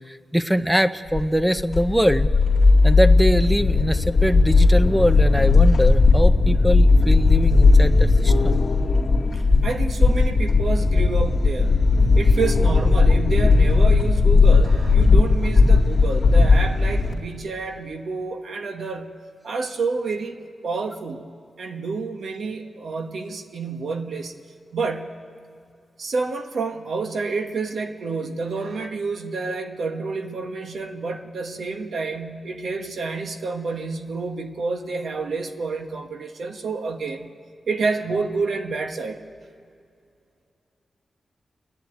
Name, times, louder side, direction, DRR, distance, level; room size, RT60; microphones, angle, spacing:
voice 1, 0.1-2.3 2.8-8.6, equal, ahead, 11 dB, 0.6 m, -22 dB
sound 1, 1.1-17.1, left 3 dB, 30° left, 2.4 m, -16 dB
voice 2, 9.3-11.7 12.1-19.1 19.4-20.4 20.6-21.3 21.6-24.3 24.7-25.2 26.0-37.3 37.7-39.2, right 4 dB, 65° right, 6 dB, 1.2 m, -29 dB
29.0 x 11.0 x 9.4 m, 2.4 s
wide cardioid pair, 180°, 0 cm